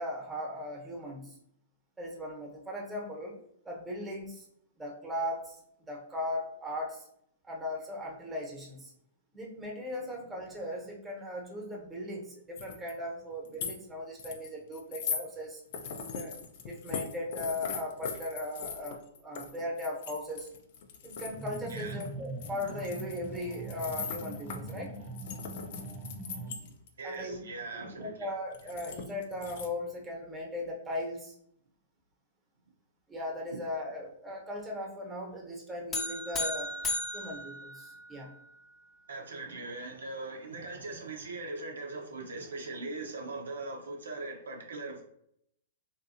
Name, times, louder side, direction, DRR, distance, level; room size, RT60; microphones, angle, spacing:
voice 1, 0.0-1.4 2.0-3.4 3.6-4.5 4.8-5.6 5.9-7.1 7.4-8.9 9.3-15.6 16.1-20.5 21.0-24.9 27.0-27.4 28.0-31.3 33.1-36.7 37.1-38.3, left 1 dB, 10° right, -2 dB, 1.0 m, -38 dB
sound 1, 12.5-12.9 13.3-13.8 14.2-15.2 15.7-22.1 22.4-26.9 28.5-29.7, left 6 dB, 55° left, 0.5 m, -40 dB
sound 2, 21.3-26.6, right 1 dB, 30° right, 0.7 m, -42 dB
voice 2, 21.7-22.0 26.6-28.3 37.1-37.3 39.1-45.0, right 3 dB, 80° right, 1 dB, 0.7 m, -40 dB
sound 3, 35.9-38.4, left 2 dB, 20° left, 0.7 m, -35 dB
3.6 x 2.6 x 2.7 m, 0.71 s
hypercardioid pair, 120°, 0 cm